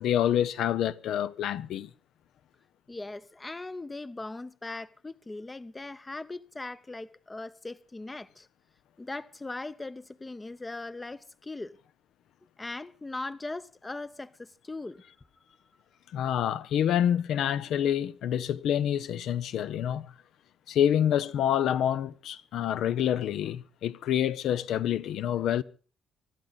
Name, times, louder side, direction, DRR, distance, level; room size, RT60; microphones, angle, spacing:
voice 1, 0.0-1.9 16.1-20.1 20.7-25.6, left 10 dB, 80° left, 0.7 m, -27 dB
voice 2, 2.9-8.5 9.0-11.7 12.6-15.0, left 2 dB, 20° left, 0.6 m, -39 dB
24.5 x 12.0 x 4.0 m
cardioid pair, 90°, 0 cm